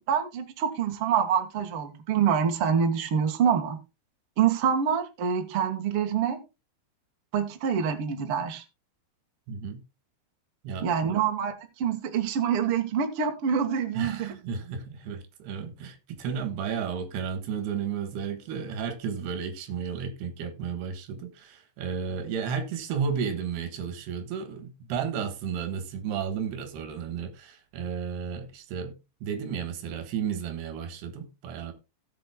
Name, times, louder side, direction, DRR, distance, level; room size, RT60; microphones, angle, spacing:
voice 1, 0.0-3.8 4.4-6.4 7.3-8.6 10.8-11.5 11.8-14.3, right 7 dB, 90° right, 1.2 m, -26 dB
voice 2, 9.5-9.8 10.6-11.2 13.9-29.0 29.2-31.7, right 6 dB, 70° right, 3.2 m, -33 dB
17.0 x 7.6 x 2.2 m
omnidirectional pair, 5.0 m